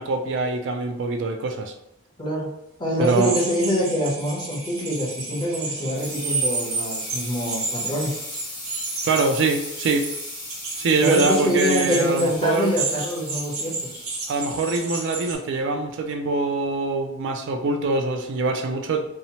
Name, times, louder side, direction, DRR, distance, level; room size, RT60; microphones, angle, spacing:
voice 1, 0.0-1.7 3.0-3.3 9.0-10.1 10.8-12.7 14.3-19.0, right 3 dB, 60° right, 4 dB, 0.3 m, -23 dB
voice 2, 2.2-2.5 2.8-8.2 11.0-14.0, equal, 20° left, -4 dB, 0.7 m, -25 dB
sound 1, 3.0-15.4, right 3 dB, 85° right, 0.7 m, -31 dB
sound 2, 5.2-16.5, left 2 dB, 40° left, 1.0 m, -39 dB
2.7 x 2.0 x 2.8 m, 0.86 s
head